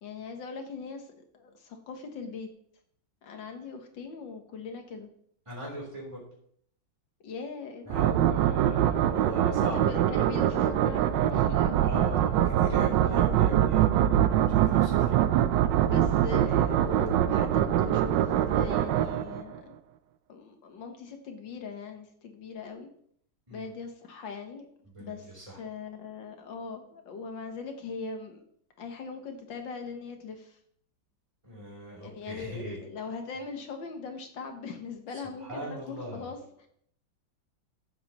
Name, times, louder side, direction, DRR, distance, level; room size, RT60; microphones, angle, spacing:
voice 1, 0.0-2.5 3.2-5.1 7.2-8.0 9.6-12.1 15.9-19.8 20.3-22.9 23.5-24.6 25.0-25.3 25.6-28.4 28.8-30.6 32.0-36.7, left 4 dB, 70° left, 5 dB, 1.9 m, -40 dB
voice 2, 5.5-6.2 7.9-10.0 11.8-14.2 14.5-15.2 23.5-23.7 24.9-25.6 31.4-32.8 35.4-36.3, equal, 15° right, -4 dB, 3.5 m, -39 dB
sound 1, 7.9-19.6, right 11 dB, 75° right, 1.2 m, -24 dB
sound 2, 10.0-18.7, right 4 dB, 45° right, 1.4 m, -39 dB
15.0 x 7.4 x 3.0 m, 0.64 s
omnidirectional pair, 2.2 m